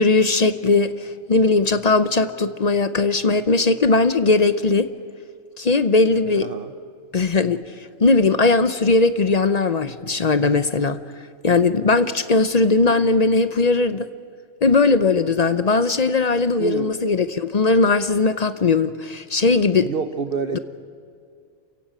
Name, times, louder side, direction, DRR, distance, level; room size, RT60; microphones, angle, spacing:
voice 1, 0.0-4.9 5.6-6.5 7.1-7.6 8.0-11.0 11.4-14.1 14.6-19.9 20.5-20.6, left 3 dB, 45° left, 0.6 m, -19 dB
voice 2, 6.4-6.7 16.6-16.9 19.8-20.6, right 5 dB, 50° right, 0.9 m, -27 dB
28.5 x 15.5 x 8.8 m
omnidirectional pair, 1.5 m